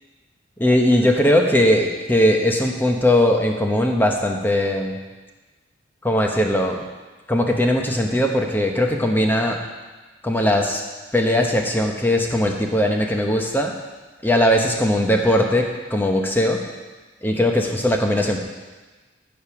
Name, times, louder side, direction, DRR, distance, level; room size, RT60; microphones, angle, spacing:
voice 1, 0.6-5.0 6.0-6.8 7.3-9.6 10.2-10.8 11.1-13.7 14.2-16.6 17.2-18.4, left 1 dB, 10° left, 2 dB, 0.9 m, -19 dB
14.5 x 5.3 x 6.0 m, 1.3 s
head